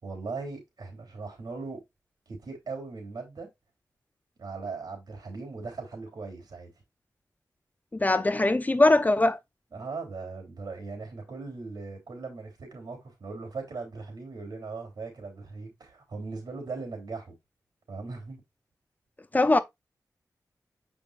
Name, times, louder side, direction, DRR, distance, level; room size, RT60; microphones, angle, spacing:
voice 1, 0.0-1.8 2.3-3.5 4.4-6.7 9.7-17.3 17.9-18.4, right 4 dB, 75° right, 3.3 m, -39 dB
voice 2, 7.9-9.4 19.3-19.6, left 2 dB, 25° left, 0.6 m, -21 dB
7.4 x 5.3 x 2.5 m
wide cardioid pair, 85°, 7 cm